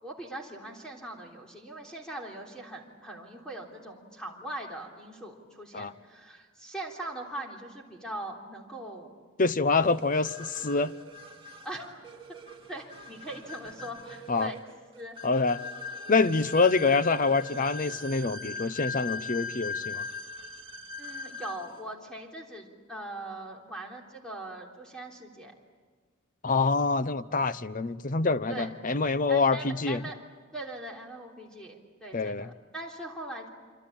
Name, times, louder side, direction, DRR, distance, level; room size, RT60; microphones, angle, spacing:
voice 1, 0.0-9.1 11.6-12.0 12.7-14.6 15.0-15.2 21.0-25.5 28.5-28.7 29.3-30.2 30.5-33.5, right 1 dB, 5° left, -1 dB, 3.4 m, -41 dB
voice 2, 9.4-10.9 14.3-14.5 15.2-15.6 16.1-20.0 26.4-30.0 32.1-32.5, left 4 dB, 40° left, 14 dB, 0.7 m, -26 dB
sound 1, 9.8-21.8, left 3 dB, 25° right, 2.3 m, -40 dB
26.5 x 26.0 x 8.7 m, 1.5 s
head